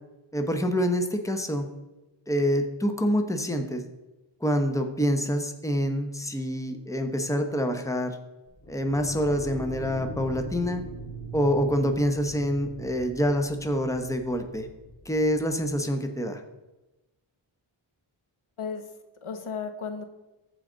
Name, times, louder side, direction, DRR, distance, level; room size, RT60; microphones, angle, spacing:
voice 1, 0.3-1.7 2.3-3.8 4.4-8.2 8.7-10.8 11.3-14.7 15.0-16.4, equal, 5° left, 6 dB, 1.0 m, -26 dB
sound 1, 8.5-15.7, right 1 dB, 30° left, 2.1 m, -41 dB
voice 2, 18.6-20.0, left 5 dB, 75° left, 7 dB, 1.1 m, -35 dB
14.0 x 5.0 x 3.9 m, 1.0 s
wide cardioid pair, 75°, 50 cm